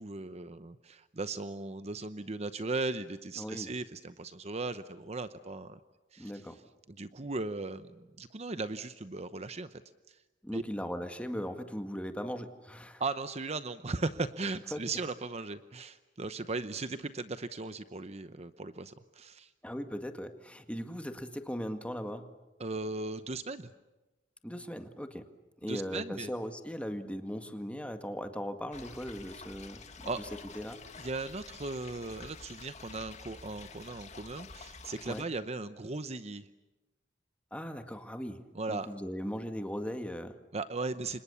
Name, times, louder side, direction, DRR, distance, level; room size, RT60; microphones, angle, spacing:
voice 1, 0.0-5.8 6.1-6.4 6.9-9.8 10.1-10.2 10.5-10.6 13.0-19.5 22.6-23.7 25.6-26.3 30.0-30.2 31.0-36.5 38.5-38.9 40.5-41.2, right 3 dB, 40° right, 11 dB, 0.8 m, -37 dB
voice 2, 3.4-3.7 6.2-6.6 10.4-13.0 14.7-14.8 19.6-22.3 24.4-25.2 25.6-29.9 30.2-30.3 30.6-30.8 35.1-35.3 37.5-38.4 38.7-40.4, equal, 5° left, 6 dB, 1.9 m, -38 dB
sound 1, 28.7-35.2, left 4 dB, 40° left, 2.3 m, -49 dB
29.5 x 26.0 x 7.0 m, 1.1 s
head